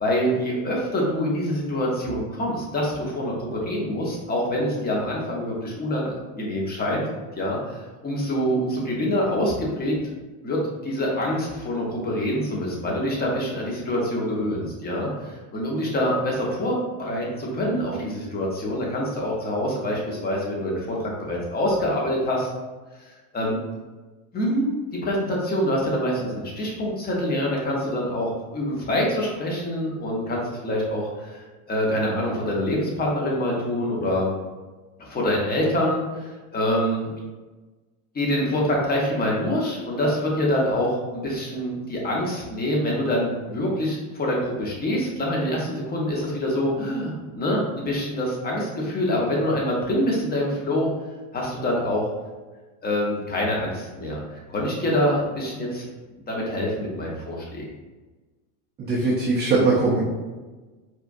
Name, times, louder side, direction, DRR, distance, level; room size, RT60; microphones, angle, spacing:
voice 1, 0.0-7.0 7.3-10.0 10.4-22.5 23.1-23.6 24.3-24.7 25.0-34.3 35.0-37.1 38.1-50.9 51.3-52.0 52.8-55.9 56.3-57.6, equal, 20° left, -3 dB, 0.9 m, -25 dB
voice 2, 58.8-60.0, right 3 dB, 20° right, -4 dB, 0.4 m, -21 dB
4.4 x 2.4 x 2.6 m, 1.3 s
supercardioid pair, 115°, 47 cm